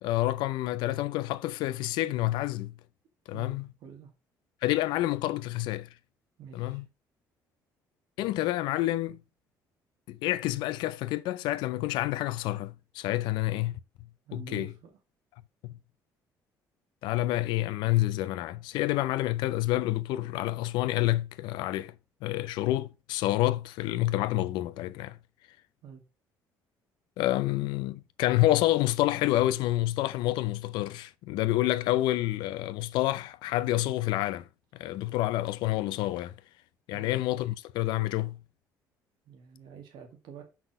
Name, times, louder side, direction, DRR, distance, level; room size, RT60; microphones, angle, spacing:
voice 1, 0.0-2.7 3.3-3.6 4.6-5.9 6.5-6.8 8.2-9.2 10.1-13.8 14.3-14.7 15.6-15.8 17.0-21.9 22.2-25.2 27.2-34.5 34.7-36.4 36.9-38.4, left 16 dB, 80° left, 0.6 m, -28 dB
voice 2, 3.8-4.1 6.4-6.8 14.3-15.0 25.8-26.0 36.9-37.2 39.3-40.4, right 7 dB, 75° right, 2.1 m, -47 dB
6.1 x 5.9 x 4.9 m
cardioid pair, 100°, 8 cm